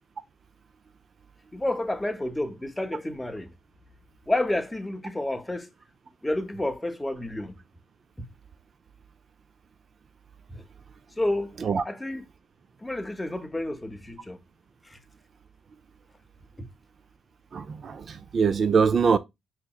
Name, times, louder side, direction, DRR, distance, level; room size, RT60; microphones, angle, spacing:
voice 1, 1.5-3.5 4.3-5.7 6.2-7.5 10.5-10.6 11.2-11.6 11.9-12.2 12.8-14.4 14.9-15.0 16.6-16.7, left 1 dB, 10° left, 0.7 m, -30 dB
voice 2, 17.5-19.2, right 5 dB, 45° right, 0.3 m, -23 dB
4.8 x 2.9 x 2.3 m
cardioid pair, 90°, 0 cm